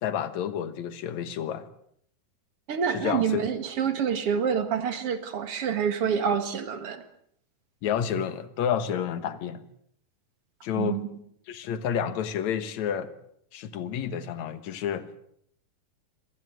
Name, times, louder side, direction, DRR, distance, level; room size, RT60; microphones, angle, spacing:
voice 1, 0.0-1.7 2.9-3.4 7.8-9.6 10.6-11.0 11.5-13.1 13.5-15.1, left 8 dB, 65° left, 2.6 m, -30 dB
voice 2, 2.7-7.0 10.8-11.1, right 7 dB, 50° right, 2.4 m, -27 dB
25.0 x 19.0 x 8.0 m
omnidirectional pair, 3.8 m